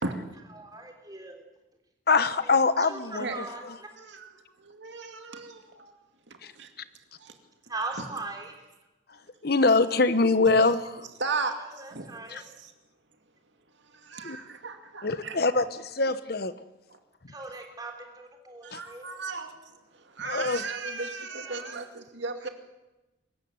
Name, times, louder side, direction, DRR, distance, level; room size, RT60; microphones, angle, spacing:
voice 1, 0.5-1.4 2.3-3.9 7.7-8.5 11.4-12.4 17.3-19.1 21.3-21.7, right 3 dB, 20° right, 3 dB, 3.4 m, -40 dB
voice 2, 2.1-3.3 6.4-6.5 9.4-10.9 12.3-12.4 14.2-14.4 15.0-16.5 18.7-18.8 20.2-20.6, left 3 dB, 50° left, 13 dB, 1.0 m, -23 dB
voice 3, 4.0-4.3 4.6-6.0 6.3-6.7 7.2-7.4 8.0-8.1 9.7-9.8 10.4-10.5 11.2-12.7 13.8-15.4 16.9-17.0 18.6-22.5, right 3 dB, 65° right, 5 dB, 2.4 m, -36 dB
23.0 x 14.0 x 9.5 m, 1.0 s
head